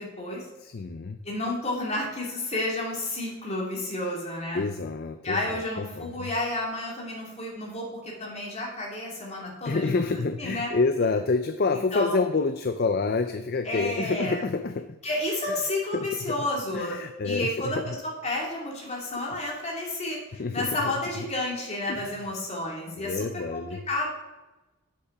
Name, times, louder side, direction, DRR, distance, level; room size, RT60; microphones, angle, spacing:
voice 1, 0.0-0.5 1.2-4.6 5.2-10.7 11.7-12.2 13.6-14.4 15.0-17.9 18.2-24.1, left 2 dB, 35° left, -2 dB, 2.6 m, -31 dB
voice 2, 0.6-1.2 4.5-6.3 9.7-15.0 15.5-15.6 15.9-16.5 16.7-18.0 20.3-20.9 21.9-22.3 23.0-23.8, left 3 dB, 50° left, 10 dB, 0.4 m, -28 dB
8.2 x 6.6 x 5.9 m, 1.1 s
head